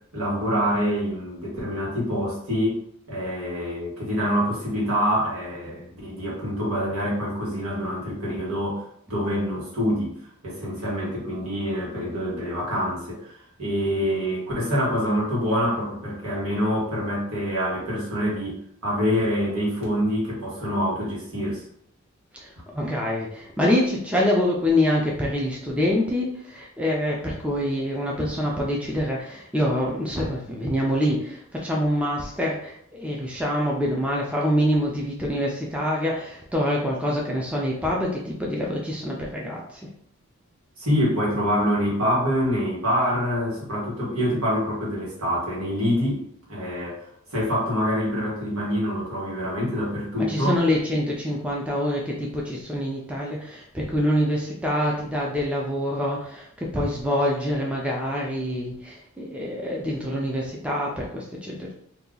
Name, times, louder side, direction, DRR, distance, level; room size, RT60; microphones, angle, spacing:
voice 1, 0.1-2.8 3.1-10.2 10.4-21.6 40.8-46.2 46.5-50.6, equal, 80° right, -5 dB, 1.4 m, -26 dB
voice 2, 22.7-39.6 50.2-56.5 56.7-61.7, left 1 dB, 5° right, -3 dB, 0.4 m, -25 dB
2.8 x 2.3 x 3.7 m, 0.68 s
head